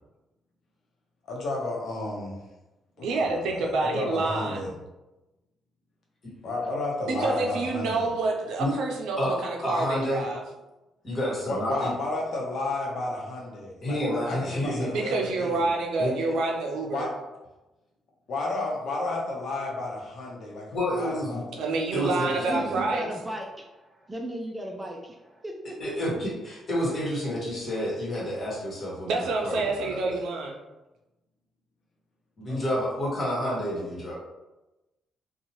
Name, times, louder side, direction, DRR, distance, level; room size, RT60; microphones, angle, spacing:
voice 1, 1.3-2.4 3.0-4.7 6.4-8.1 11.4-15.7 16.9-17.1 18.3-21.6 32.5-32.6, left 2 dB, 65° left, -2 dB, 0.8 m, -32 dB
voice 2, 3.0-4.7 7.1-10.4 14.9-17.1 21.6-23.1 29.1-30.6, right 3 dB, 80° right, 1 dB, 0.5 m, -28 dB
voice 3, 9.6-10.2 11.0-11.9 13.8-14.9 16.0-16.3 20.7-21.4 21.9-22.8 25.8-30.2 32.4-34.1, equal, 40° left, -5 dB, 1.3 m, -29 dB
voice 4, 22.4-25.8, equal, 15° right, 1 dB, 0.4 m, -36 dB
2.7 x 2.3 x 2.9 m, 1.0 s
cardioid pair, 90°, 0 cm